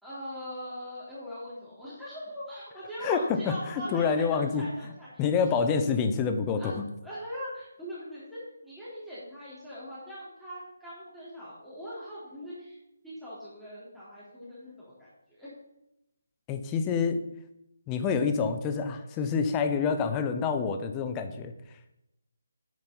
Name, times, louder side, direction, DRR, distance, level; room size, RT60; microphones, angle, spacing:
voice 1, 0.0-5.6 6.6-6.7 7.0-12.8 13.0-15.5, equal, ahead, -12 dB, 3.8 m, -41 dB
voice 2, 3.0-4.7 5.2-6.8 16.5-17.2 17.9-21.5, left 5 dB, 15° left, 7 dB, 0.8 m, -27 dB
9.4 x 8.9 x 5.5 m, 0.86 s
figure-of-eight pair, 155°, 0 cm